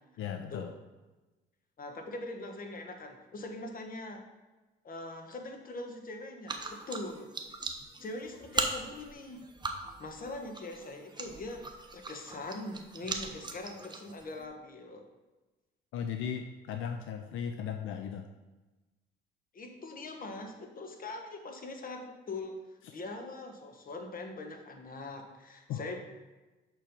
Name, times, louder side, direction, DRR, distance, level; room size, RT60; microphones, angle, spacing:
voice 1, 0.2-0.7 15.9-18.3 25.7-26.0, left 8 dB, 80° left, 6 dB, 0.5 m, -37 dB
voice 2, 1.8-4.2 4.8-7.3 8.0-9.4 10.0-15.1 19.5-22.6 22.9-26.0, left 2 dB, 45° left, 4 dB, 1.2 m, -42 dB
sound 1, 6.5-14.5, right 3 dB, 20° right, 0.8 m, -39 dB
6.1 x 4.4 x 5.2 m, 1.2 s
cardioid pair, 90°, 20 cm